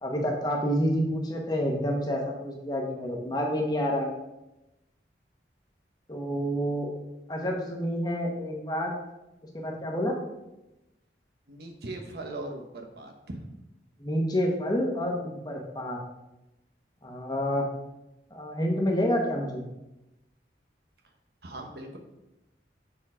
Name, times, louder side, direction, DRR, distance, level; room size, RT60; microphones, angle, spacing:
voice 1, 0.0-4.1 6.1-6.9 7.3-8.9 9.5-10.1 14.0-16.0 17.0-17.7 18.3-19.6, equal, 20° left, 0 dB, 1.1 m, -28 dB
voice 2, 11.5-13.4 21.4-22.0, right 2 dB, 60° right, 3 dB, 1.0 m, -39 dB
6.8 x 4.1 x 4.9 m, 0.96 s
head